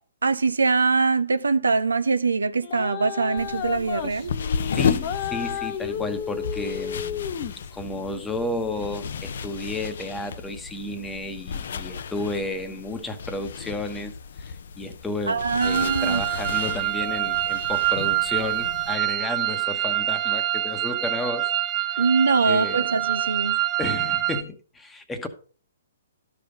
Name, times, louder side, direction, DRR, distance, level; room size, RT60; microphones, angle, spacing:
voice 1, 0.2-4.3 15.3-16.2 22.0-23.6, right 4 dB, 80° right, 0.6 m, -23 dB
sound 1, 2.6-7.7, left 8 dB, 35° left, 1.0 m, -32 dB
sound 2, 3.4-19.0, left 6 dB, 60° left, 0.6 m, -33 dB
voice 2, 4.7-7.3 7.7-21.5 21.9-22.0 22.5-22.9 23.8-25.3, left 2 dB, 10° left, 1.1 m, -32 dB
sound 3, 15.6-24.4, right 14 dB, 25° right, 0.7 m, -26 dB
12.5 x 5.3 x 5.1 m
figure-of-eight pair, 130°, 0 cm